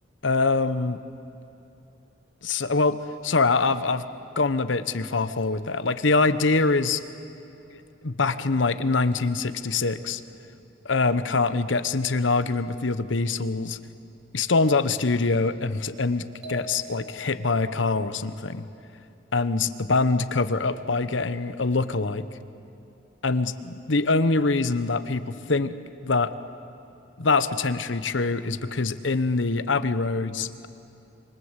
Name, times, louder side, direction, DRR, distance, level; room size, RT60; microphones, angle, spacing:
voice 1, 0.2-1.0 2.4-3.0 3.2-4.0 4.4-7.0 7.7-10.2 10.8-13.8 14.3-18.6 19.3-22.2 23.2-25.7 26.0-26.3 27.2-30.7, left 3 dB, 80° left, 13 dB, 1.0 m, -24 dB
sound 1, 16.4-17.6, right 1 dB, 65° right, 2.9 m, -41 dB
27.0 x 25.0 x 8.2 m, 2.8 s
head